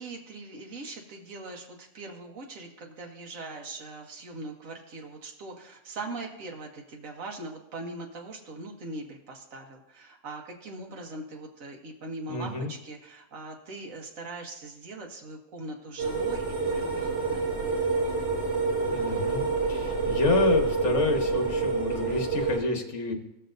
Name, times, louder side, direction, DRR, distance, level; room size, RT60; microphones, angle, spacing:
voice 1, 0.0-17.4, right 2 dB, 65° right, 1 dB, 1.6 m, -41 dB
voice 2, 12.3-12.7 18.9-23.1, left 3 dB, 55° left, 3 dB, 1.5 m, -29 dB
sound 1, 16.0-22.6, right 4 dB, 50° right, 3.6 m, -27 dB
16.5 x 6.8 x 2.6 m, 0.88 s
omnidirectional pair, 1.5 m